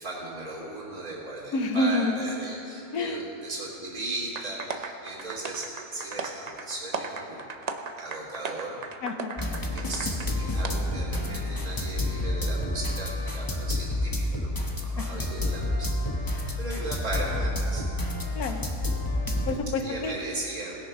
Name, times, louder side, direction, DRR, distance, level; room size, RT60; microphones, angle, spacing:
voice 1, 0.0-7.5 8.0-8.8 9.7-14.5 14.8-15.9 16.2-17.9 19.8-20.8, right 2 dB, 75° right, -5 dB, 3.6 m, -37 dB
voice 2, 1.5-2.2 2.9-3.2 9.0-9.4 15.0-15.2 18.3-18.7 19.5-20.1, left 2 dB, 85° left, 5 dB, 1.4 m, -28 dB
sound 1, 4.3-10.3 10.6-10.7, right 4 dB, 50° right, 0.5 m, -36 dB
sound 2, 9.4-19.5, left 1 dB, 15° left, 0.8 m, -29 dB
19.5 x 6.9 x 5.4 m, 2.8 s
omnidirectional pair, 1.6 m